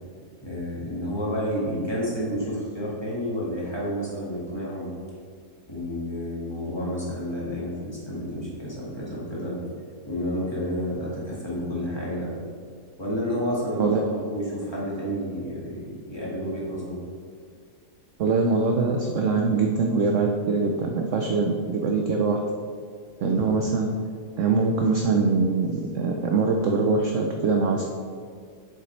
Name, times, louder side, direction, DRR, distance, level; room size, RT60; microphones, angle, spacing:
voice 1, 0.4-4.9 5.7-9.6 10.1-12.3 13.0-17.0 23.3-23.5, equal, 15° left, -7 dB, 1.8 m, -30 dB
voice 2, 18.2-22.4 23.2-23.9 24.4-27.9, right 4 dB, 65° right, 2 dB, 0.8 m, -23 dB
8.0 x 6.8 x 3.2 m, 2.1 s
omnidirectional pair, 1.7 m